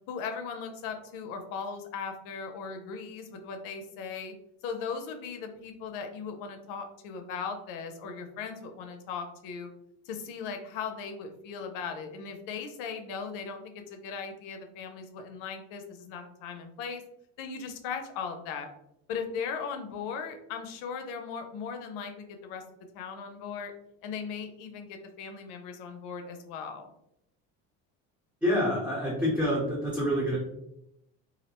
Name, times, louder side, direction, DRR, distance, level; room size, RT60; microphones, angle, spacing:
voice 1, 0.1-4.3 4.6-9.7 10.1-17.0 17.4-18.7 19.1-22.6 22.9-23.7 24.0-26.9, left 6 dB, 80° left, 5 dB, 0.6 m, -38 dB
voice 2, 28.4-30.4, equal, 5° right, -7 dB, 0.7 m, -27 dB
2.4 x 2.0 x 2.9 m, 0.82 s
cardioid pair, 115°, 32 cm